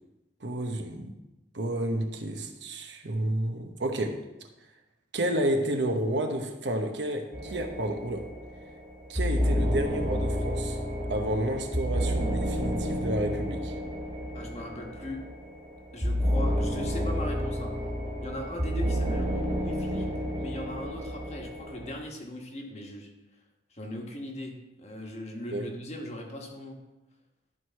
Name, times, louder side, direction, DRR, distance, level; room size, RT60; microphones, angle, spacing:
voice 1, 0.4-1.2 1.5-4.2 5.1-8.3 9.1-10.8 11.1-13.7 25.5-25.7, right 1 dB, 70° right, 5 dB, 0.9 m, -30 dB
sound 1, 7.3-21.9, equal, 40° right, 2.0 m, -30 dB
voice 2, 14.3-15.2 15.9-17.7 18.2-20.1 20.4-23.1 23.7-26.8, left 1 dB, 35° left, 1 dB, 1.2 m, -39 dB
11.5 x 4.7 x 4.5 m, 1.0 s
head